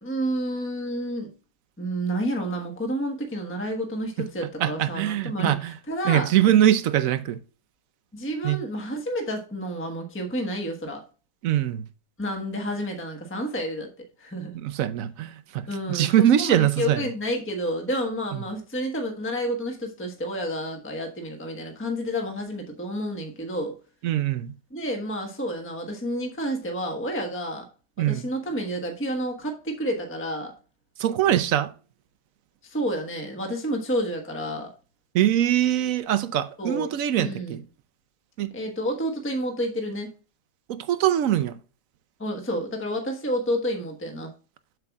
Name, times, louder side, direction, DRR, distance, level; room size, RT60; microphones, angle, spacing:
voice 1, 0.0-1.3 1.8-6.3 8.1-11.0 12.2-13.9 14.2-14.5 15.7-16.1 16.4-23.7 24.7-27.7 28.0-30.5 32.6-34.7 36.6-37.6 38.5-40.1 42.2-44.3, equal, 10° left, 1.0 m, -30 dB
voice 2, 4.6-5.7 6.0-7.4 8.4-8.6 11.4-11.9 14.5-17.0 24.0-24.5 28.0-28.3 31.0-31.7 35.1-37.6 38.4-38.5 40.7-41.6, right 11 dB, 65° right, 0.9 m, -22 dB
7.8 x 7.1 x 2.3 m
omnidirectional pair, 1.7 m